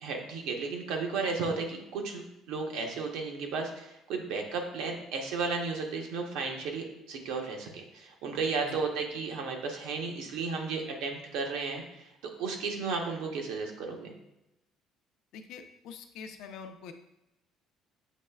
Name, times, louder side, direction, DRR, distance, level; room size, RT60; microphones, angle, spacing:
voice 1, 0.0-7.7 7.9-14.1, right 4 dB, 80° right, 2 dB, 0.9 m, -34 dB
voice 2, 15.3-16.9, left 6 dB, 65° left, 6 dB, 0.5 m, -45 dB
7.3 x 3.1 x 2.3 m, 0.93 s
cardioid pair, 175°, 0 cm